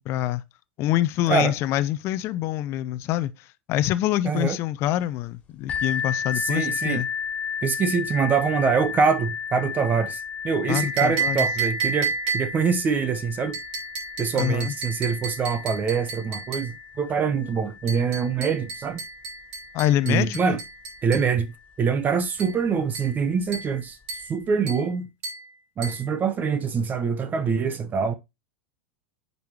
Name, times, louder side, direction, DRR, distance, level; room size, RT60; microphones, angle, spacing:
voice 1, 0.1-0.4 0.8-7.1 10.7-11.5 14.3-14.7 19.7-20.4, left 13 dB, 45° left, 0.6 m, -25 dB
voice 2, 4.2-4.6 6.3-7.0 7.6-13.6 14.2-19.0 20.1-20.6 21.0-21.5 21.8-24.0 24.3-25.1 25.8-28.1, right 5 dB, 30° right, 0.9 m, -24 dB
sound 1, 5.7-21.2 22.0-22.1 22.6-22.7, left 7 dB, 20° left, 2.7 m, -34 dB
sound 2, 10.8-12.7 13.5-16.8 17.9-21.3 22.4-22.6 22.9-23.2 23.5-23.8 24.1-24.4 24.7-24.9 25.2-25.5 25.8-26.1, right 5 dB, 55° right, 4.0 m, -31 dB
9.2 x 5.5 x 3.0 m
hypercardioid pair, 95°, 6 cm